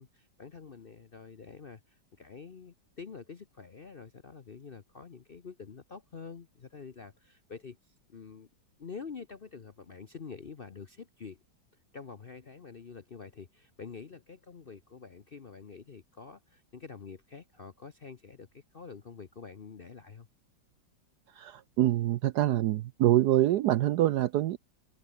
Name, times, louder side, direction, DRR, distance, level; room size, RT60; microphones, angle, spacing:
voice 1, 0.0-8.5 8.8-11.4 11.9-20.3, left 5 dB, 45° left, 0.7 m, -47 dB
voice 2, 21.4-24.6, right 14 dB, 70° right, 1.0 m, -25 dB
open air
omnidirectional pair, 2.1 m